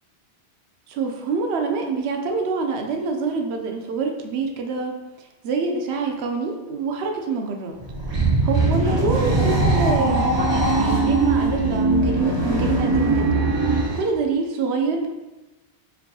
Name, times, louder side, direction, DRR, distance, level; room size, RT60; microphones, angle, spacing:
voice 1, 0.9-7.8 8.4-13.5 13.9-15.1, right 4 dB, 70° right, 3 dB, 0.8 m, -26 dB
sound 1, 7.8-14.1, right 2 dB, 35° right, 0.4 m, -20 dB
4.5 x 2.7 x 2.7 m, 1.1 s
omnidirectional pair, 1.2 m